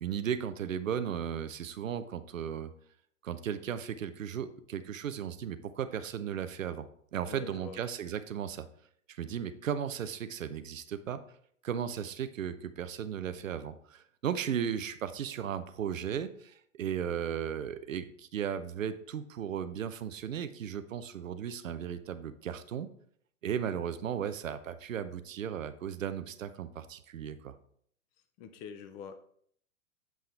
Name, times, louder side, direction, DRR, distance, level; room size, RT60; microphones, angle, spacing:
voice 1, 0.0-2.7 3.2-6.9 7.1-8.7 9.1-11.2 11.6-22.9 23.4-27.5, right 8 dB, 80° right, 12 dB, 0.7 m, -36 dB
voice 2, 7.3-7.8 28.4-29.2, left 7 dB, 25° left, 9 dB, 0.4 m, -45 dB
7.6 x 5.6 x 3.4 m, 0.63 s
hypercardioid pair, 110°, 39 cm